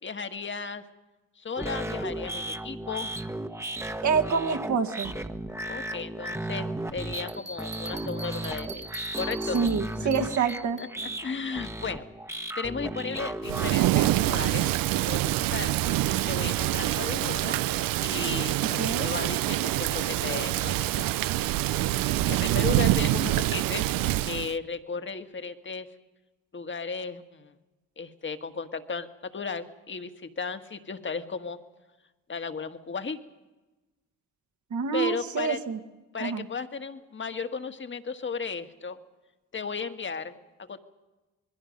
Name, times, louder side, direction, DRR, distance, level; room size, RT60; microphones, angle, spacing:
voice 1, 0.0-0.8 1.4-3.1 5.7-9.6 10.0-10.3 10.8-14.7 15.0-15.8 16.3-17.6 18.0-21.1 22.3-23.9 24.2-25.9 26.5-27.5 28.0-31.6 32.3-33.2 34.9-35.6 36.1-39.0 39.5-40.8, left 5 dB, 35° left, 9 dB, 1.6 m, -35 dB
sound 1, 1.6-13.7, right 1 dB, 10° right, 1.2 m, -35 dB
voice 2, 4.0-5.1 9.5-10.8 18.8-19.1 34.7-35.8 36.2-36.5, right 6 dB, 55° right, 7 dB, 1.8 m, -27 dB
sound 2, 7.3-10.9, right 2 dB, 30° right, 2.1 m, -42 dB
Thunder / Rain, 13.4-24.5, right 15 dB, 80° right, 0.6 m, -26 dB
27.0 x 21.0 x 5.3 m, 1.2 s
cardioid pair, 80°, 34 cm